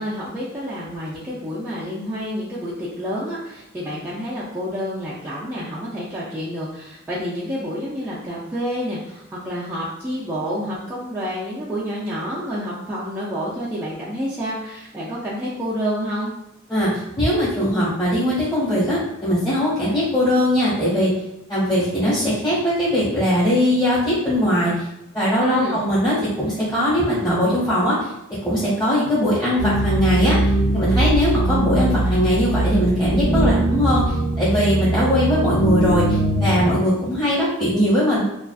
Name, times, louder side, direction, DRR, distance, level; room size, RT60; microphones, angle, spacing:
voice 1, 0.0-16.3 25.4-25.8, equal, 10° right, -9 dB, 0.4 m, -28 dB
voice 2, 16.7-21.1 21.5-24.8 25.1-28.1 28.4-38.2, equal, 20° left, -10 dB, 1.1 m, -20 dB
sound 1, 29.6-36.7, right 1 dB, 65° right, 0.5 m, -21 dB
2.4 x 2.3 x 2.3 m, 0.86 s
head